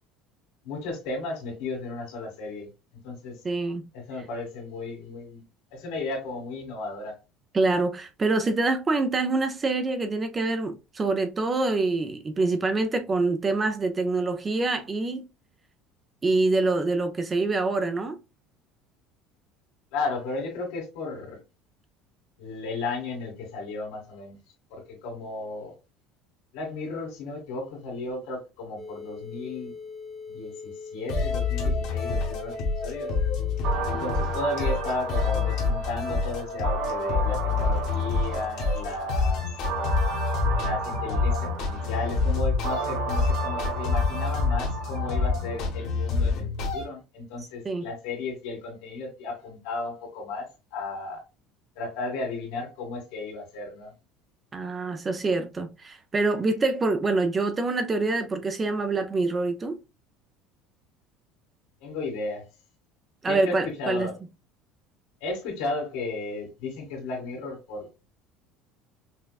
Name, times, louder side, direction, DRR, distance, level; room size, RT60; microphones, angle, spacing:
voice 1, 0.6-2.7 3.0-3.4 3.9-5.4 5.7-7.1 19.9-21.4 22.4-24.4 24.7-25.7 26.5-29.7 30.3-32.6 32.8-33.1 33.9-39.4 40.6-51.2 51.8-53.9 61.8-62.4 63.2-64.2 65.2-68.0, left 3 dB, 75° left, 2.0 m, -34 dB
voice 2, 3.4-3.9 7.5-15.2 16.2-18.2 47.7-47.9 54.5-59.8 63.2-64.1, right 3 dB, 15° right, 0.4 m, -25 dB
sound 1, 28.8-33.8, left 5 dB, 10° left, 0.7 m, -41 dB
sound 2, 31.1-46.8, left 4 dB, 55° left, 1.1 m, -27 dB
sound 3, 33.6-45.6, right 4 dB, 65° right, 1.0 m, -34 dB
5.7 x 2.2 x 2.3 m
cardioid pair, 170°, 0 cm